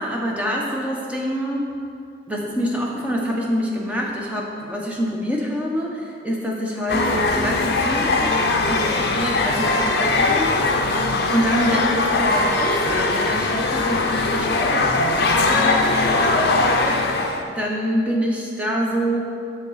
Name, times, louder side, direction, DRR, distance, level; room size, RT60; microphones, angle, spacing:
voice 1, 0.0-1.6 2.3-16.0 17.5-19.2, equal, 5° right, -2 dB, 0.8 m, -26 dB
sound 1, 6.9-17.4, left 3 dB, 55° left, 0.5 m, -20 dB
6.6 x 5.9 x 4.0 m, 2.4 s
head